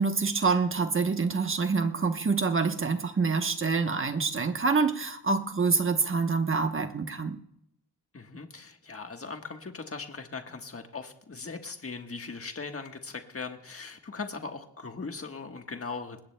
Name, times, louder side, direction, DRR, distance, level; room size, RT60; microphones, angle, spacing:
voice 1, 0.0-7.4, right 4 dB, 30° right, 6 dB, 1.0 m, -26 dB
voice 2, 8.1-16.2, left 4 dB, 35° left, 5 dB, 1.4 m, -39 dB
25.5 x 20.0 x 2.2 m, 0.76 s
wide cardioid pair, 135°, 39 cm